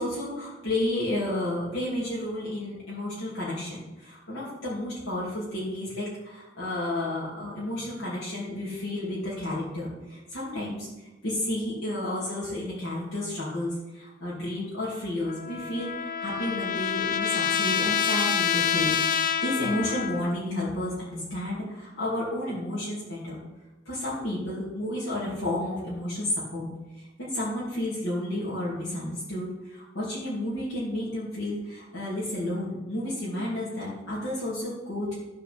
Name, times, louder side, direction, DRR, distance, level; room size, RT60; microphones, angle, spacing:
voice 1, 0.0-23.4 23.8-26.7 26.9-35.1, left 1 dB, 70° left, -8 dB, 3.0 m, -31 dB
Trumpet, 15.3-20.4, left 8 dB, 45° left, 0.4 m, -27 dB
12.5 x 4.8 x 6.7 m, 1.1 s
head